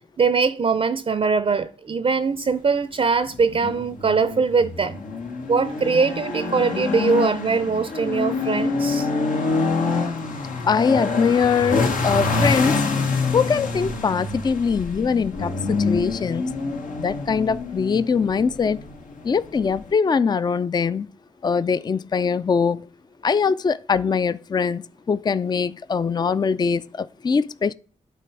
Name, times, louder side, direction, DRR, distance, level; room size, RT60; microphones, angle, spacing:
voice 1, 0.2-5.0 5.5-9.1, right 5 dB, 45° right, 0.5 m, -22 dB
sound 1, 3.3-19.9, left 3 dB, 80° left, 1.1 m, -26 dB
voice 2, 10.6-12.9 13.3-16.4 17.0-18.8 19.2-21.1 21.4-22.9 23.2-27.7, left 5 dB, 30° left, 0.3 m, -22 dB
9.2 x 3.4 x 4.6 m
cardioid pair, 50°, 14 cm